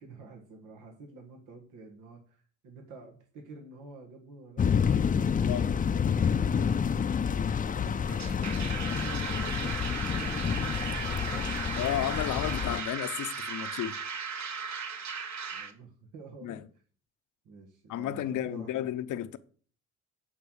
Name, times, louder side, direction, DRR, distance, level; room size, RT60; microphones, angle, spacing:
voice 1, 0.0-4.8 5.2-11.6 12.0-12.2 15.5-16.6 17.4-18.9, right 3 dB, 90° right, 1.7 m, -48 dB
sound 1, 4.6-12.8, left 7 dB, 25° left, 0.5 m, -28 dB
sound 2, 8.1-15.7, right 6 dB, 65° right, 1.5 m, -37 dB
voice 2, 11.8-14.0 16.4-16.6 17.9-19.4, left 11 dB, 80° left, 0.8 m, -33 dB
10.0 x 4.7 x 6.5 m
cardioid pair, 90°, 30 cm